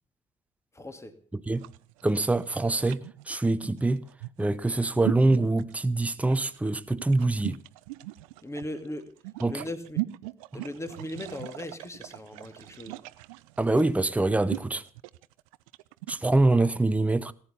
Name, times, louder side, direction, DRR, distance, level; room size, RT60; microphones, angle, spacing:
voice 1, 0.7-1.1 8.4-9.1 9.5-10.0 10.5-13.0, left 1 dB, 15° left, 2.4 m, -38 dB
voice 2, 1.3-1.6 2.0-4.0 4.4-7.6 9.4-9.6 13.6-14.8 16.1-17.3, right 2 dB, 5° right, 0.9 m, -25 dB
sound 1, 1.5-16.2, right 20 dB, 65° right, 0.6 m, -39 dB
19.0 x 10.5 x 7.1 m
figure-of-eight pair, 50°, 19 cm